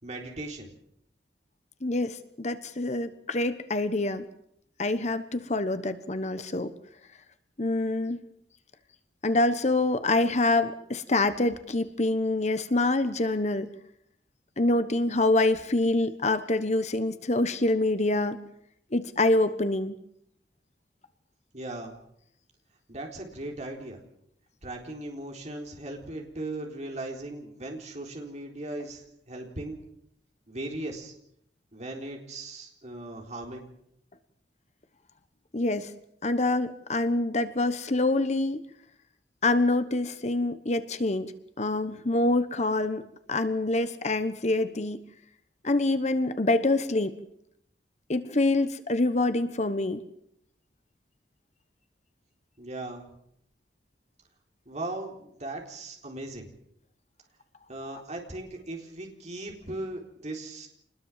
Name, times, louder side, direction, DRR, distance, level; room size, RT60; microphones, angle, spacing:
voice 1, 0.0-0.7 21.5-21.9 22.9-24.0 24.6-29.8 30.5-31.1 31.7-33.7 52.6-53.1 54.7-56.5 57.7-60.7, right 2 dB, 40° right, 1 dB, 4.0 m, -38 dB
voice 2, 1.8-4.2 4.8-6.7 7.6-8.2 9.2-13.7 14.6-18.4 18.9-20.0 35.5-35.9 36.2-38.6 39.4-45.0 45.6-47.2 48.1-50.1 57.9-58.0, left 2 dB, 40° left, 11 dB, 1.2 m, -26 dB
26.5 x 20.5 x 7.5 m, 0.73 s
head